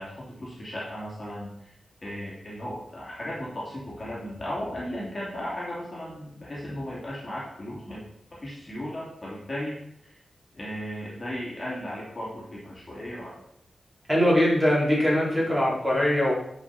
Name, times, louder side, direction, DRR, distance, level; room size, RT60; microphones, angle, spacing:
voice 1, 0.0-1.7 2.0-8.0 8.3-10.2 10.5-13.4, equal, 25° left, -6 dB, 2.5 m, -36 dB
voice 2, 14.1-16.3, left 1 dB, 15° right, -7 dB, 3.6 m, -22 dB
10.5 x 5.7 x 4.2 m, 0.73 s
wide cardioid pair, 160°, 0 cm